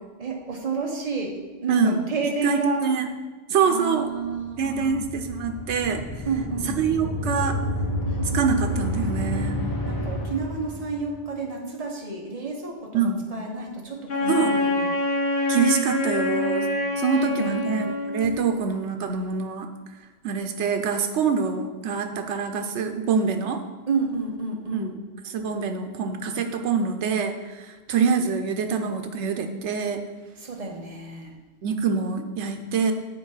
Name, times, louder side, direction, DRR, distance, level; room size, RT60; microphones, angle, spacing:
voice 1, 0.2-1.4 1.6-2.8 3.7-5.0 6.3-6.8 8.1-8.2 9.8-14.9 17.1-17.7 23.9-25.0 30.4-31.3, right 4 dB, 35° right, 1 dB, 1.0 m, -30 dB
voice 2, 1.7-2.0 2.4-3.1 3.5-4.1 4.6-6.0 6.6-7.6 8.3-9.6 12.9-13.2 14.3-14.5 15.5-16.7 17.0-19.7 20.2-23.6 24.7-24.9 25.2-30.0 31.6-32.9, right 6 dB, 85° right, 6 dB, 1.0 m, -25 dB
sound 1, 4.3-11.2, left 1 dB, 20° left, 0.8 m, -29 dB
Wind instrument woodwind instrument, 14.1-18.5, left 2 dB, 65° left, 1.2 m, -26 dB
7.1 x 3.9 x 5.5 m, 1.3 s
omnidirectional pair, 1.1 m